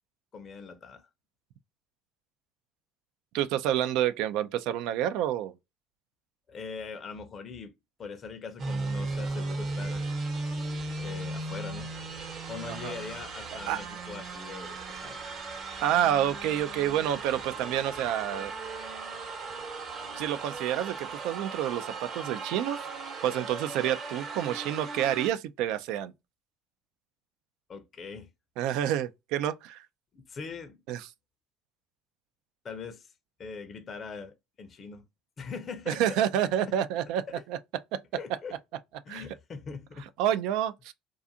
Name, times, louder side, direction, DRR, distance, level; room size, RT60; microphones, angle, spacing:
voice 1, 0.3-1.1 6.5-7.7 8.0-10.1 11.0-11.9 12.5-15.2 27.7-28.3 30.1-30.8 32.6-33.1 33.4-35.0 35.4-36.7 37.3-37.4 38.1-38.6 39.0-40.1, left 5 dB, 40° left, 0.5 m, -42 dB
voice 2, 3.3-5.5 12.7-12.9 13.7-13.8 15.8-18.5 20.2-22.9 23.2-26.1 28.6-29.9 30.9-31.1 35.9-37.2 37.5-37.6 37.9-38.0 39.1-39.2 40.2-40.9, right 11 dB, 70° right, 0.3 m, -28 dB
sound 1, 8.6-25.3, right 3 dB, 45° right, 0.9 m, -37 dB
2.4 x 2.4 x 2.6 m
supercardioid pair, 85°, 0 cm